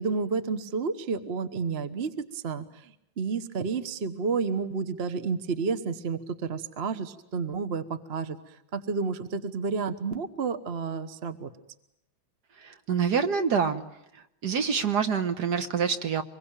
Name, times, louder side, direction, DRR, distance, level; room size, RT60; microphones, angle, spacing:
voice 1, 0.0-11.5, right 5 dB, 35° right, 10 dB, 1.1 m, -31 dB
voice 2, 12.6-13.8 14.1-16.2, right 6 dB, 55° right, 8 dB, 1.7 m, -26 dB
25.5 x 21.5 x 8.9 m, 0.81 s
omnidirectional pair, 2.3 m